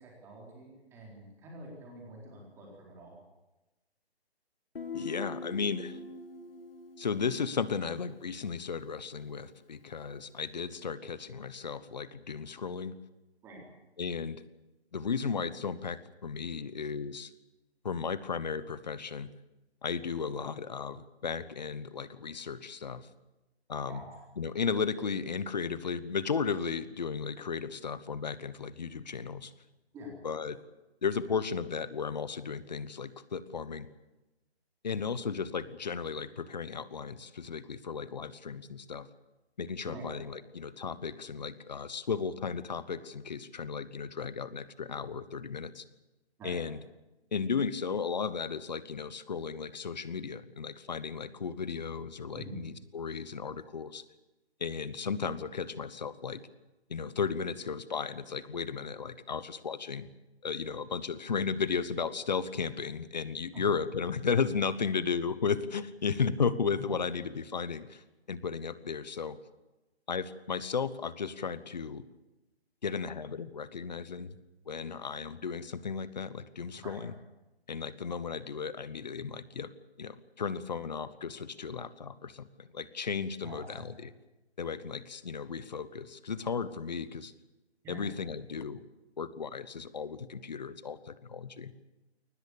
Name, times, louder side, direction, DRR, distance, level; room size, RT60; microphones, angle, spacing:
voice 1, 0.0-3.1 13.4-13.6 23.9-24.1 29.9-30.1 39.9-40.1 46.4-46.6 52.3-52.6 63.5-63.6 76.8-77.0 83.4-83.8 87.8-88.1, right 1 dB, 10° right, -2 dB, 4.2 m, -46 dB
Guitar, 4.7-8.4, left 3 dB, 55° left, 2.8 m, -43 dB
voice 2, 4.9-6.0 7.0-12.9 14.0-14.4 14.9-17.3 17.8-19.3 19.8-23.1 23.7-24.0 24.4-29.5 30.2-30.6 31.0-33.9 34.8-39.1 39.6-45.8 46.4-46.8 47.3-54.0 54.6-56.4 56.9-60.1 60.4-69.4 70.1-72.1 72.8-74.4 74.7-77.1 77.7-79.7 80.0-84.1 84.6-87.3 87.9-88.8 89.2-91.7, left 5 dB, 40° left, 16 dB, 1.1 m, -35 dB
21.5 x 19.5 x 8.6 m, 1.0 s
hypercardioid pair, 165°, 33 cm